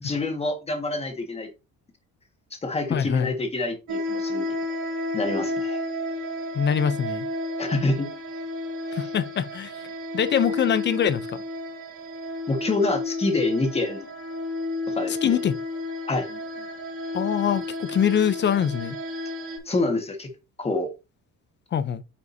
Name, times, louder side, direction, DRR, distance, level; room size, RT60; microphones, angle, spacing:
voice 1, 0.0-1.5 2.6-4.5 5.1-5.8 7.6-8.1 12.5-14.1 14.9-15.4 16.1-16.3 19.6-20.3 20.6-20.9, left 2 dB, 20° left, 1.6 m, -26 dB
voice 2, 2.9-3.3 6.5-7.3 8.9-9.7 10.1-11.4 15.2-15.6 17.1-19.0 21.7-22.0, left 8 dB, 35° left, 0.6 m, -24 dB
sound 1, 3.9-19.6, left 2 dB, 90° right, 3.7 m, -32 dB
9.5 x 5.1 x 2.7 m
cardioid pair, 155°, 34 cm